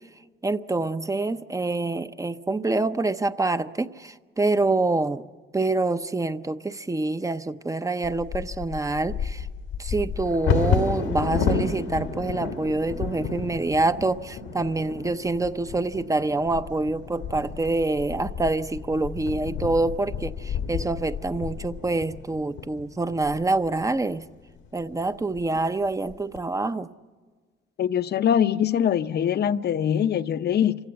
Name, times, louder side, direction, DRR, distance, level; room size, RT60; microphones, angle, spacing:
voice 1, 0.4-5.2 5.5-9.5 9.8-24.2 24.7-26.9, right 2 dB, 15° right, 0.6 m, -26 dB
Bird vocalization bird call bird song / Wind / Thunder, 8.0-23.9 24.6-24.7 25.0-25.4 25.9-26.4, left 6 dB, 90° left, 1.6 m, -31 dB
voice 2, 27.8-30.8, left 9 dB, 55° left, 0.7 m, -23 dB
26.0 x 16.0 x 8.1 m
cardioid pair, 90°, 20 cm